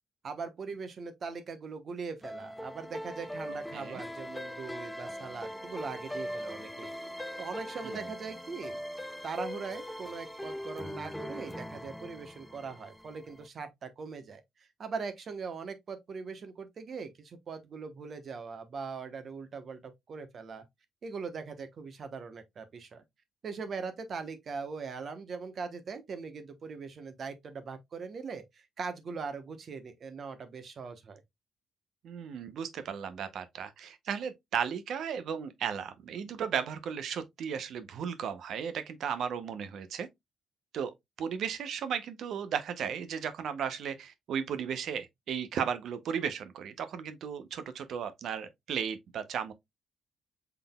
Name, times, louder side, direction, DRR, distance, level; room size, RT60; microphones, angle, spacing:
voice 1, 0.2-6.9 7.4-8.8 9.2-20.6 21.0-23.0 23.4-31.2, right 5 dB, 50° right, 1.1 m, -41 dB
sound 1, 2.2-13.5, equal, 5° left, 0.6 m, -41 dB
voice 2, 32.0-40.1 40.7-49.5, right 7 dB, 70° right, 0.8 m, -35 dB
5.8 x 3.8 x 2.3 m
cardioid pair, 90°, 0 cm